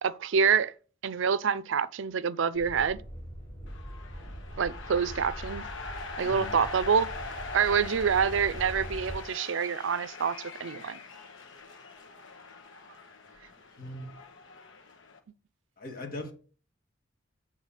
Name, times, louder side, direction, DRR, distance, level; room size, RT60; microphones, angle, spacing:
voice 1, 0.0-0.7 1.0-3.0 4.6-5.7 6.2-7.1 7.5-11.0, right 6 dB, 75° right, 0.4 m, -27 dB
sound 1, 2.5-9.2, equal, 20° left, 4.0 m, -42 dB
sound 2, 3.7-15.2, left 4 dB, 75° left, 1.3 m, -43 dB
voice 2, 6.2-6.6 13.8-14.1 15.8-16.3, left 1 dB, 45° left, 2.1 m, -39 dB
8.1 x 3.7 x 6.6 m
head